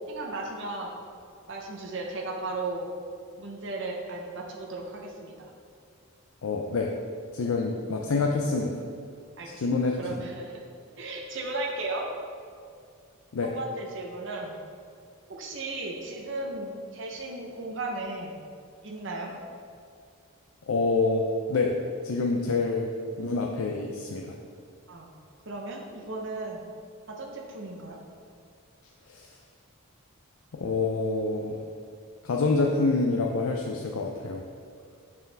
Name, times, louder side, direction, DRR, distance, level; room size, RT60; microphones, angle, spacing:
voice 1, 0.1-1.0 1.5-2.9 3.4-5.5 9.4-10.6 11.0-12.1 13.4-14.6 15.3-18.4 18.8-19.3 24.9-25.1 25.5-26.6 27.1-28.0, right 2 dB, 55° right, 0 dB, 0.8 m, -35 dB
voice 2, 6.4-6.9 7.3-8.7 9.6-10.0 13.3-13.5 20.7-21.8 22.0-22.9 23.2-24.3 29.1-29.3 30.5-31.6 32.2-34.5, left 3 dB, 75° left, 1 dB, 0.5 m, -27 dB
6.6 x 6.1 x 3.4 m, 2.3 s
head